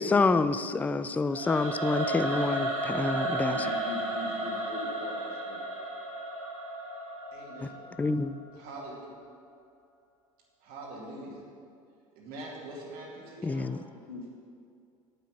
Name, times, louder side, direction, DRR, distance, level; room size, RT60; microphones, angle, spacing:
voice 1, 0.0-3.7 7.6-7.7 8.0-8.4 13.4-13.8, left 3 dB, 10° left, 13 dB, 0.4 m, -27 dB
Singing / Musical instrument, 1.3-8.4, right 1 dB, 80° right, 2.3 m, -33 dB
voice 2, 3.4-5.6 13.9-14.3, left 1 dB, 75° left, 1 dB, 1.7 m, -41 dB
voice 3, 7.3-7.8 8.5-9.1 10.6-11.4 12.2-13.7, right 2 dB, 50° right, -3 dB, 2.4 m, -43 dB
9.2 x 7.4 x 7.1 m, 2.4 s
figure-of-eight pair, 70°, 19 cm